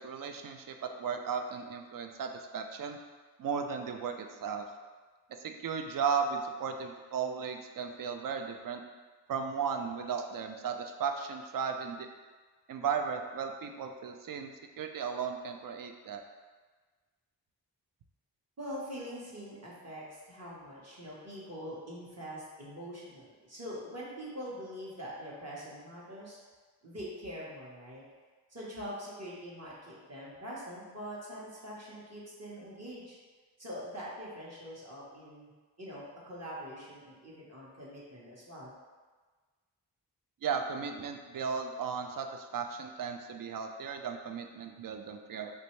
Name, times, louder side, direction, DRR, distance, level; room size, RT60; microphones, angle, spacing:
voice 1, 0.0-3.0 3.4-4.7 5.3-8.8 9.3-12.1 12.7-16.2 40.4-45.5, right 6 dB, 55° right, 5 dB, 0.5 m, -35 dB
voice 2, 18.6-26.4 26.8-28.0 28.5-33.2 33.6-35.5 35.8-38.7, equal, 40° right, -6 dB, 1.2 m, -44 dB
3.3 x 2.6 x 3.1 m, 1.4 s
cardioid pair, 45°, 41 cm